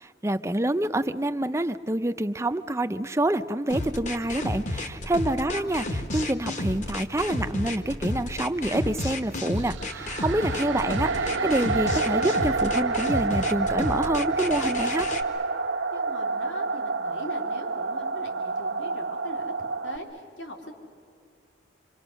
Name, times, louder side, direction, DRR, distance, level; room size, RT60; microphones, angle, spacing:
voice 1, 0.0-11.1 11.4-15.1, right 1 dB, 15° right, 11 dB, 0.5 m, -27 dB
sound 1, 3.7-15.2, left 1 dB, 40° left, 1.3 m, -31 dB
voice 2, 5.3-5.7 15.9-20.7, left 1 dB, 75° left, 2 dB, 2.7 m, -40 dB
sound 2, 9.5-20.0, right 3 dB, 85° right, 1.0 m, -28 dB
27.0 x 25.0 x 6.3 m, 2.4 s
head